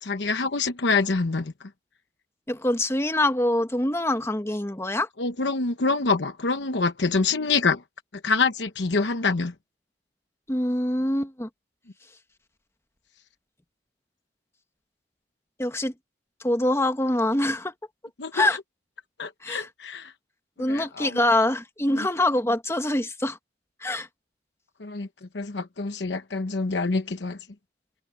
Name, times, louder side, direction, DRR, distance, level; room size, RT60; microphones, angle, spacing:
voice 1, 0.0-1.7 5.2-7.8 8.2-9.5 18.2-18.6 19.2-20.1 20.7-21.2 21.9-22.1 24.8-25.1 25.3-27.4, left 4 dB, 80° left, 1.0 m, -26 dB
voice 2, 2.5-5.1 10.5-11.5 15.6-15.9 16.4-17.7 18.3-18.6 19.4-19.7 20.6-23.4 23.8-24.1, left 1 dB, 15° left, 1.3 m, -24 dB
head